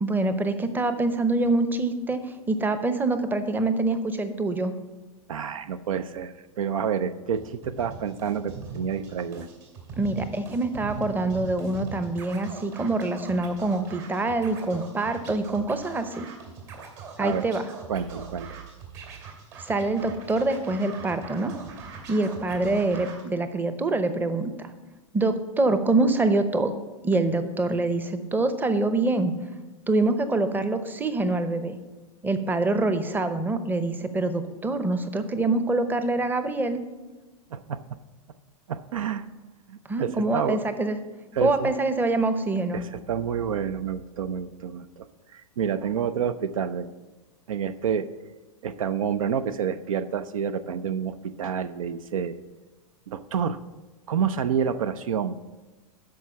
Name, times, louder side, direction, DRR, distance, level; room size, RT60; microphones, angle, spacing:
voice 1, 0.0-4.7 10.0-16.3 17.2-17.6 19.6-21.5 22.1-24.7 25.1-26.7 27.0-29.3 29.9-31.7 32.2-36.8 39.9-41.0 41.4-42.8, right 2 dB, 10° right, 10 dB, 0.7 m, -25 dB
voice 2, 5.3-9.5 17.2-17.4 17.9-18.6 37.5-37.8 38.7-39.3 39.7-40.6 41.3-41.7 42.7-46.9 47.5-48.1 48.6-52.4 53.1-53.6 54.1-55.4, right 7 dB, 70° right, 13 dB, 0.5 m, -29 dB
Scratching (performance technique), 7.3-23.2, right 5 dB, 55° right, 2.5 m, -42 dB
12.5 x 4.7 x 5.8 m, 1.2 s
hypercardioid pair, 100°, 18 cm